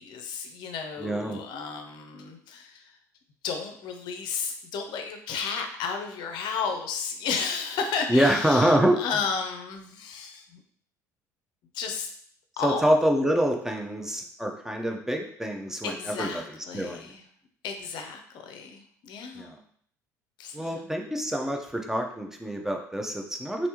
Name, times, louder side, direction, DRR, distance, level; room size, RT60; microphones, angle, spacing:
voice 1, 0.0-2.8 3.4-10.6 11.7-12.1 12.6-12.8 15.8-17.2 17.6-19.6 20.4-20.9, left 6 dB, 55° left, 5 dB, 0.6 m, -33 dB
voice 2, 1.0-1.4 8.1-9.0 12.6-17.1 19.4-19.5 20.5-23.7, equal, 5° right, 2 dB, 0.6 m, -26 dB
3.3 x 2.5 x 2.9 m, 0.62 s
hypercardioid pair, 60°, 9 cm